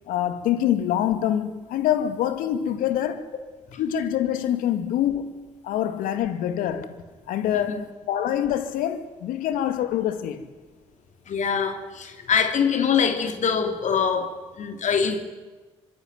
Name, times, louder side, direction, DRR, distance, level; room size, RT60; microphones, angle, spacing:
voice 1, 0.1-3.3 3.8-10.5, left 10 dB, 75° left, 2.2 m, -25 dB
voice 2, 11.3-15.3, left 6 dB, 55° left, 3.0 m, -24 dB
25.5 x 20.5 x 9.5 m
hypercardioid pair, 50°, 15 cm